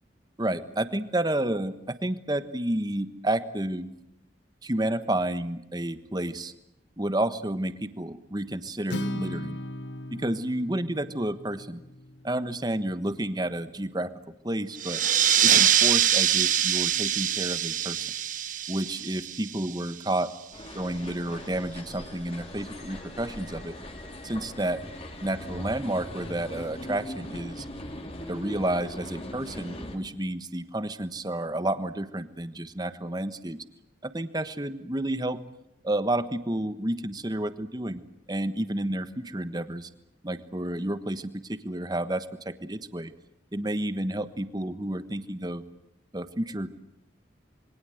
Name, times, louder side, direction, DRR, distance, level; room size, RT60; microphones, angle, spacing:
voice 1, 0.4-3.9 4.6-6.5 7.0-9.6 10.1-11.8 12.2-14.1 14.4-15.0 15.4-18.1 18.7-20.3 20.7-23.7 24.2-24.8 25.2-27.7 28.3-33.6 34.0-35.4 35.8-38.0 38.3-39.9 40.2-43.1 43.5-45.6 46.1-46.7, right 1 dB, 20° right, 11 dB, 1.3 m, -30 dB
Acoustic guitar, 8.9-13.1, left 1 dB, 75° left, 1.3 m, -37 dB
sound 1, 14.8-20.0, right 10 dB, 45° right, 1.2 m, -24 dB
sound 2, 20.5-30.0, left 1 dB, 35° left, 3.2 m, -40 dB
27.5 x 23.5 x 8.0 m, 0.81 s
head